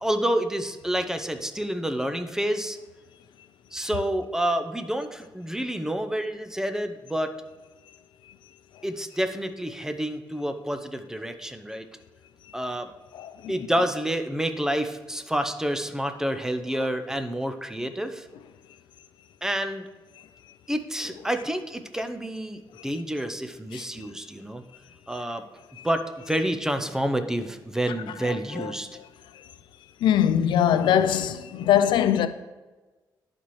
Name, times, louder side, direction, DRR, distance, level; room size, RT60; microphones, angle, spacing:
voice 1, 0.0-2.8 3.7-7.3 8.8-11.9 12.5-12.9 13.5-18.3 19.4-19.9 20.7-24.6 25.1-25.4 25.8-28.9, right 1 dB, 5° right, 0.7 m, -28 dB
voice 2, 13.1-13.6 16.8-16.9 22.8-22.9 23.7-24.1 25.8-25.9 28.2-29.0 30.0-32.3, left 10 dB, 80° left, 0.4 m, -23 dB
11.5 x 4.2 x 3.1 m
cardioid pair, 75°, 8 cm